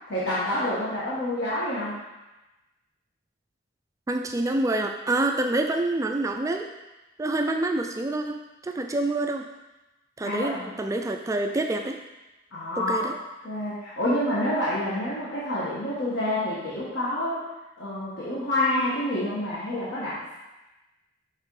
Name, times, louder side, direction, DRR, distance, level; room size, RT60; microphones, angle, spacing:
voice 1, 0.1-1.9 10.2-10.7 12.5-13.1 13.4-17.4 17.8-20.4, left 1 dB, 65° left, -9 dB, 1.5 m, -28 dB
voice 2, 4.1-6.7 7.2-9.5 10.2-12.0 12.8-13.1, right 2 dB, 15° right, 5 dB, 0.3 m, -27 dB
6.5 x 3.7 x 4.8 m, 1.0 s
head